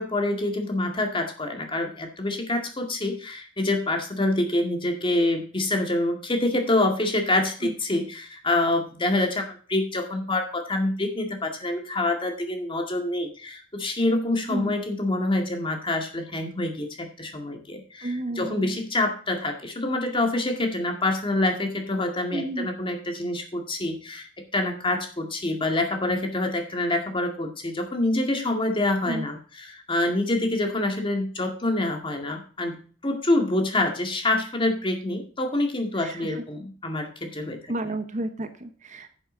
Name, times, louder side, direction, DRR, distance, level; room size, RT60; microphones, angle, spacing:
voice 1, 0.0-37.6, left 2 dB, 25° left, 4 dB, 2.1 m, -26 dB
voice 2, 18.0-18.8 22.3-22.7 29.1-29.3 35.9-36.4 37.7-39.1, right 1 dB, 40° right, 9 dB, 1.0 m, -32 dB
10.0 x 7.9 x 3.9 m, 0.40 s
head